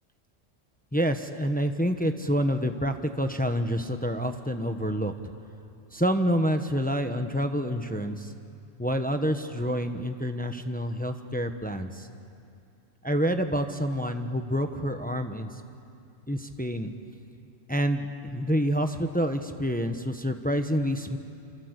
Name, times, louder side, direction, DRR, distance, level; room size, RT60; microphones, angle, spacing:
voice 1, 0.9-5.1 5.9-8.3 8.8-12.1 13.0-15.5 16.3-16.9 17.7-21.2, equal, 5° left, 6 dB, 1.1 m, -28 dB
27.5 x 26.0 x 8.2 m, 2.5 s
omnidirectional pair, 1.3 m